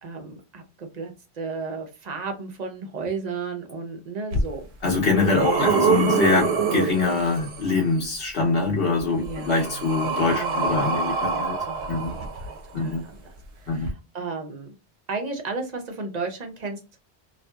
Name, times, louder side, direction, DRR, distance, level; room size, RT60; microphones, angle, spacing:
voice 1, 0.0-4.7 5.4-5.9 9.2-9.9 10.3-13.2 13.6-14.7 15.1-16.8, right 4 dB, 45° right, 0.7 m, -34 dB
sound 1, 4.3-4.4 5.0-7.7 8.9-12.8 13.8-13.9, right 5 dB, 85° right, 0.9 m, -25 dB
voice 2, 4.8-11.6 11.9-12.1 12.7-13.0 13.7-13.9, left 3 dB, 70° left, 0.9 m, -24 dB
2.6 x 2.5 x 2.2 m
omnidirectional pair, 1.1 m